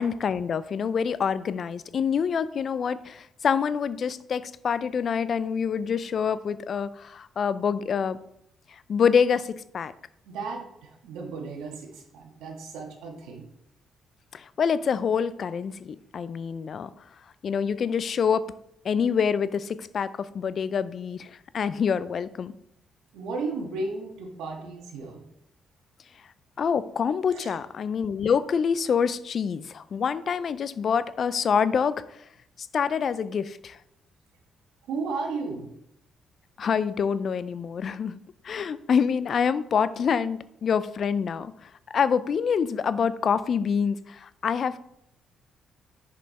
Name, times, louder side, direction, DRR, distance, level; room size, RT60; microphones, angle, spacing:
voice 1, 0.0-8.2 8.7-9.9 14.3-16.9 17.4-18.5 18.8-22.5 26.6-32.2 32.7-33.8 36.6-38.2 38.4-44.8, left 6 dB, 55° left, 16 dB, 0.4 m, -26 dB
voice 2, 10.2-13.5 23.1-25.2 27.3-27.6 34.9-35.7, right 3 dB, 90° right, 2 dB, 1.5 m, -34 dB
6.8 x 5.4 x 4.1 m, 0.78 s
cardioid pair, 90°, 0 cm